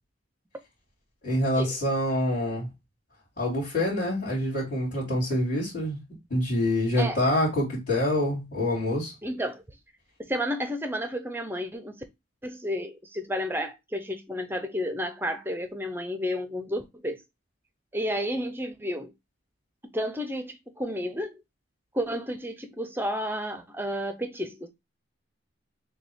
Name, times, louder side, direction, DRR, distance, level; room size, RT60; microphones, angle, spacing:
voice 1, 1.2-2.7 3.4-6.0 6.3-9.1, left 1 dB, 45° left, 2.7 m, -26 dB
voice 2, 9.2-9.6 10.2-12.0 12.4-17.2 17.9-19.1 19.8-21.4 21.9-24.7, equal, 10° right, 0.7 m, -31 dB
6.5 x 2.4 x 3.5 m
head